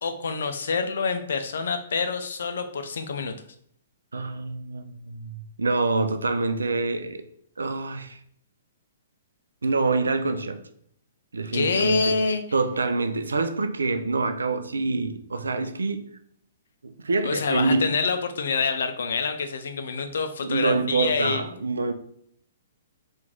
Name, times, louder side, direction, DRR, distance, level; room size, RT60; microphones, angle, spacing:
voice 1, 0.0-3.3 11.5-12.4 17.2-21.6, left 4 dB, 65° left, 0.5 m, -26 dB
voice 2, 4.1-7.2 7.6-8.2 9.6-10.6 11.3-16.2 16.8-17.9 20.4-21.9, right 3 dB, 75° right, 0.4 m, -26 dB
3.0 x 2.6 x 3.6 m
figure-of-eight pair, 120°, 0 cm